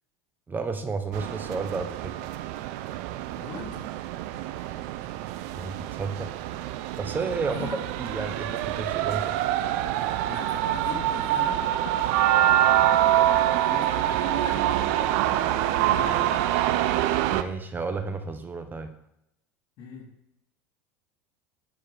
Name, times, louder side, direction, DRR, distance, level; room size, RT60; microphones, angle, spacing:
voice 1, 0.5-2.1 5.5-6.3 7.0-7.6 8.0-9.4 17.3-18.9, right 4 dB, 20° right, 7 dB, 1.0 m, -32 dB
sound 1, 1.1-17.4, right 12 dB, 65° right, 0.7 m, -25 dB
voice 2, 3.4-3.9 7.5-7.8 10.3-11.8 13.5-16.3 19.8-20.1, left 5 dB, 55° left, 1 dB, 3.5 m, -41 dB
11.0 x 5.0 x 5.9 m, 0.82 s
hypercardioid pair, 85°, 8 cm